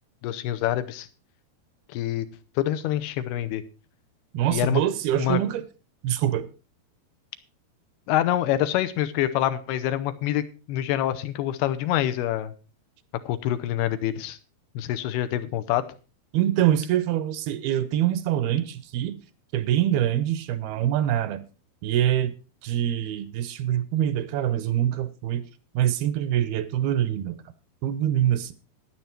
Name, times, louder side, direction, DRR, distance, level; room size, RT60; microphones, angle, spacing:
voice 1, 0.2-1.1 1.9-2.3 2.6-3.6 4.5-4.8 5.2-5.4 8.1-12.5 13.3-14.4 14.8-15.8, left 12 dB, 80° left, 2.8 m, -26 dB
voice 2, 4.3-5.6 6.0-6.5 16.3-19.2 19.5-21.4 21.8-22.3 22.6-25.4 25.7-27.4 27.8-28.5, right 11 dB, 75° right, 2.5 m, -24 dB
12.5 x 10.5 x 4.4 m
omnidirectional pair, 4.7 m